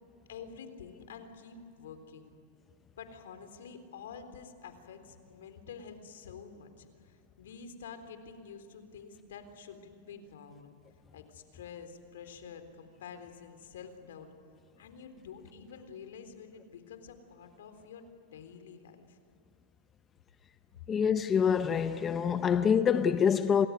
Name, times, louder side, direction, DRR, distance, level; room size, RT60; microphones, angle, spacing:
voice 1, 0.3-2.3 3.0-10.8 11.1-14.3 14.8-19.2, left 6 dB, 85° left, 3.6 m, -48 dB
voice 2, 20.9-23.7, left 7 dB, 20° left, 0.8 m, -26 dB
27.5 x 20.0 x 9.4 m
supercardioid pair, 140°, 0 cm